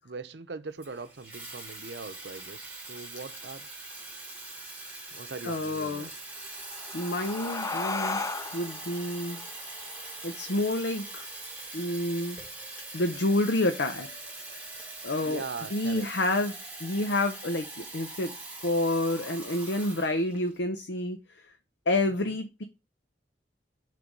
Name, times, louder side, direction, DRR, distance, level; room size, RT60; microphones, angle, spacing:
voice 1, 0.0-3.7 5.1-6.1 15.2-16.1, right 4 dB, 70° right, 0.7 m, -41 dB
Water tap faucet / Fill (with liquid), 0.8-20.6, right 2 dB, 10° right, 2.3 m, -42 dB
voice 2, 5.4-6.1 6.9-9.4 10.2-11.3 11.7-12.4 12.9-14.1 15.0-15.4 15.7-18.3 18.6-21.4 21.9-22.6, left 1 dB, 80° left, 0.7 m, -29 dB
sound 1, 6.4-11.6, left 3 dB, 20° left, 0.4 m, -37 dB
7.0 x 3.4 x 5.3 m
head